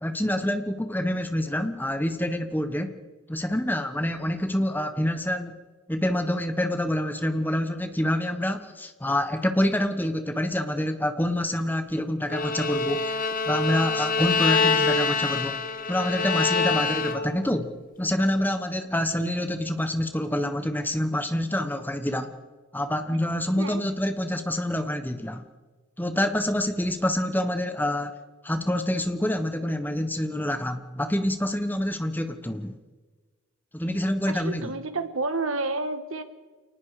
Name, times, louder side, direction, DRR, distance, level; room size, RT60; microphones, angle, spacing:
voice 1, 0.0-3.0 3.3-5.6 5.9-13.2 13.5-15.6 15.9-22.3 22.7-25.4 26.0-28.1 28.4-32.7 33.7-34.7, left 1 dB, 10° left, 8 dB, 1.2 m, -27 dB
Bowed string instrument, 12.3-17.5, left 4 dB, 40° left, 1.3 m, -25 dB
voice 2, 34.3-36.2, right 3 dB, 80° right, 9 dB, 1.7 m, -30 dB
29.0 x 19.0 x 5.0 m, 1.4 s
head